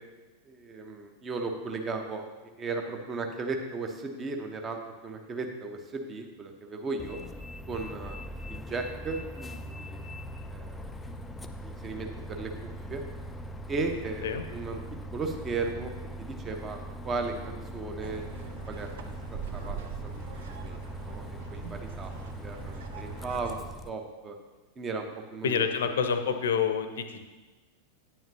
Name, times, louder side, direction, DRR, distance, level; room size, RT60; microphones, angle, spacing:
voice 1, 0.5-7.2 7.7-10.0 10.5-10.9 11.6-13.0 13.7-14.8 15.1-15.9 16.2-18.9 19.5-19.8 20.0-22.1 22.4-24.4 24.8-25.7, right 3 dB, 20° right, 4 dB, 1.0 m, -36 dB
Bus, 7.0-23.9, equal, 10° left, 0.4 m, -41 dB
sound 1, 18.0-23.6, right 7 dB, 60° right, 0.7 m, -43 dB
voice 2, 25.4-27.2, left 7 dB, 60° left, 8 dB, 0.7 m, -28 dB
9.7 x 9.1 x 2.8 m, 1.2 s
figure-of-eight pair, 90°, 0 cm